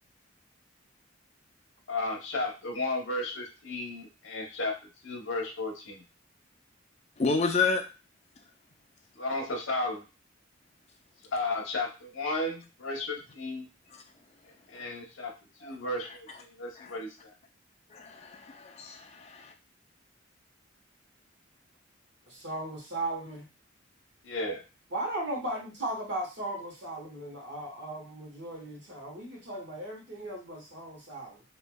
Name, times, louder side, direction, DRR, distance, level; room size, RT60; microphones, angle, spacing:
voice 1, 1.9-4.8 5.0-6.0 9.2-10.0 11.3-13.7 14.7-15.3 15.6-16.3 16.6-17.3 24.2-24.6, left 2 dB, 90° left, 2 dB, 0.8 m, -33 dB
voice 2, 7.2-7.8 15.6-15.7 16.8-16.9 17.9-19.5, left 4 dB, 35° left, 4 dB, 0.4 m, -30 dB
voice 3, 22.3-23.5 24.9-31.4, right 1 dB, 60° right, -2 dB, 1.2 m, -37 dB
3.2 x 2.6 x 2.2 m, 0.30 s
head